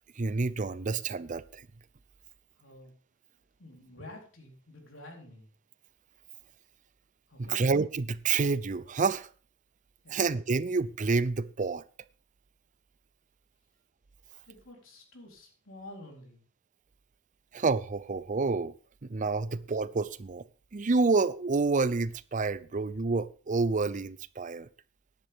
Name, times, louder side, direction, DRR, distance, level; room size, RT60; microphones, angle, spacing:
voice 1, 0.2-1.7 7.5-9.3 10.1-11.8 17.5-18.7 19.0-20.4 20.7-24.7, right 4 dB, 40° right, 0.5 m, -28 dB
voice 2, 2.6-2.9 3.6-5.5 7.3-7.6 10.0-10.3 14.4-16.4, left 1 dB, 85° left, 3.8 m, -49 dB
14.5 x 10.5 x 3.6 m
head